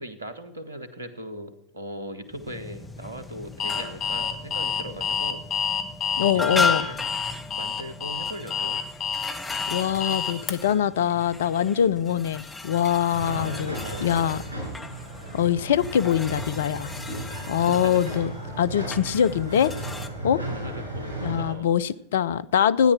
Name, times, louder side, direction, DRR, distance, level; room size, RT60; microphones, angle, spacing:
voice 1, 0.0-5.4 6.3-7.0 7.5-8.8 13.3-14.3 17.3-18.2 20.4-21.7, right 1 dB, 80° right, 11 dB, 1.4 m, -38 dB
sound 1, 2.3-20.1, left 3 dB, 10° left, 1.2 m, -36 dB
Alarm, 3.6-10.5, left 7 dB, 30° left, 1.2 m, -28 dB
voice 2, 6.2-6.8 9.7-13.8 14.0-14.4 15.3-16.9 17.5-18.3 18.6-19.7 20.2-20.4 21.2-22.9, left 9 dB, 65° left, 16 dB, 0.5 m, -23 dB
sound 2, 13.1-21.5, right 1 dB, 80° left, 5.9 m, -35 dB
13.0 x 9.9 x 6.0 m, 0.83 s
figure-of-eight pair, 85°, 0 cm